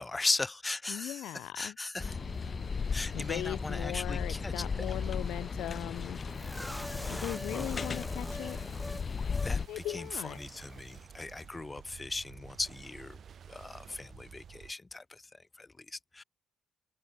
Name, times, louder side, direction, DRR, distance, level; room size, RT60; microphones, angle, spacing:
voice 1, 0.0-2.2 2.9-4.9 7.0-7.7 9.4-13.2 13.5-16.2, left 2 dB, 20° left, 1.8 m, -38 dB
voice 2, 0.9-1.7 3.1-6.2 7.1-8.6 9.7-10.4, left 14 dB, 85° left, 3.1 m, -39 dB
sound 1, 2.0-9.7, left 5 dB, 40° left, 2.8 m, -36 dB
sound 2, 2.0-14.7, right 7 dB, 55° right, 3.0 m, -51 dB
sound 3, 6.3-9.5 9.8-10.0 10.3-10.5, equal, ahead, 3.2 m, -42 dB
open air
cardioid pair, 90°, 0 cm